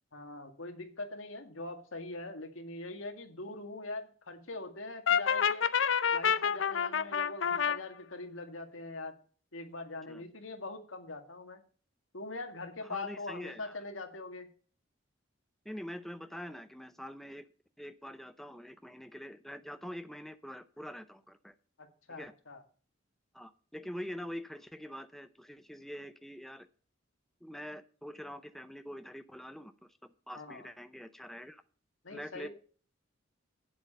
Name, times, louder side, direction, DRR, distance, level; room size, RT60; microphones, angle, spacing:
voice 1, 0.1-5.6 6.1-9.1 9.5-11.6 12.1-14.5 21.8-22.6 30.4-30.7 32.0-32.5, left 2 dB, 90° left, 5 dB, 2.0 m, -42 dB
Brass instrument, 5.1-7.8, left 7 dB, 65° left, 0.6 m, -28 dB
voice 2, 12.8-13.8 15.6-17.5 17.8-21.5 22.1-22.3 23.3-26.7 27.4-31.6 32.1-32.5, equal, ahead, 9 dB, 0.6 m, -45 dB
9.6 x 7.7 x 5.4 m, 0.41 s
head